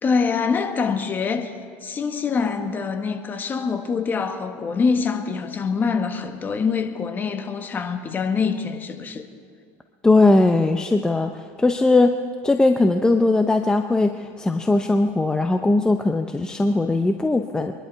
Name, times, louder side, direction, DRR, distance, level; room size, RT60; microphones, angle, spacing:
voice 1, 0.0-1.5 1.8-9.3, left 5 dB, 30° left, 1.4 m, -24 dB
voice 2, 10.0-12.2 12.4-17.7, left 2 dB, 10° left, 0.7 m, -19 dB
24.5 x 11.5 x 4.6 m
supercardioid pair, 110°, 7 cm